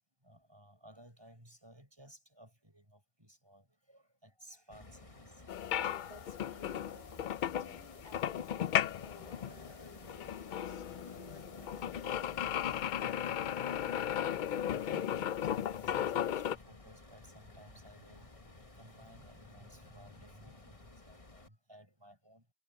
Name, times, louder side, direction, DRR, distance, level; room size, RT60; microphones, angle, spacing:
voice 1, 0.2-5.3 8.0-8.2 13.6-14.2 14.7-22.4, equal, 20° right, 6.0 m, -58 dB
sound 1, 4.7-21.5, left 2 dB, 30° left, 1.6 m, -54 dB
sound 2, 5.5-16.6, left 10 dB, 60° left, 0.5 m, -35 dB
voice 2, 5.7-12.8, left 4 dB, 85° left, 3.6 m, -58 dB
omnidirectional pair, 1.1 m